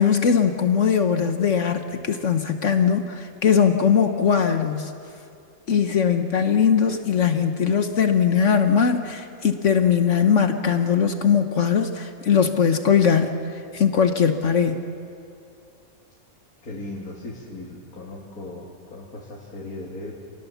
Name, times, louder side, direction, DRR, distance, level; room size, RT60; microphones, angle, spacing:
voice 1, 0.0-4.9 5.7-13.4 13.7-14.8, left 7 dB, 60° left, 7 dB, 1.3 m, -20 dB
voice 2, 16.6-20.1, left 2 dB, 90° left, -2 dB, 2.8 m, -37 dB
28.5 x 19.5 x 7.1 m, 2.5 s
omnidirectional pair, 1.5 m